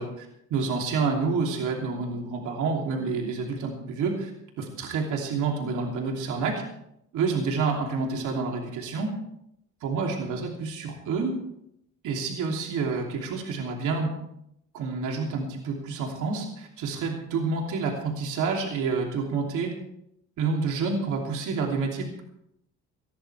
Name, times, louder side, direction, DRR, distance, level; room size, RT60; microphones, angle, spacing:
voice 1, 0.0-4.3 4.6-6.6 7.1-9.1 9.8-11.4 12.0-14.1 14.7-19.7 20.4-22.2, right 4 dB, 85° right, 0 dB, 2.9 m, -28 dB
19.5 x 14.5 x 3.4 m, 0.76 s
cardioid pair, 90°, 30 cm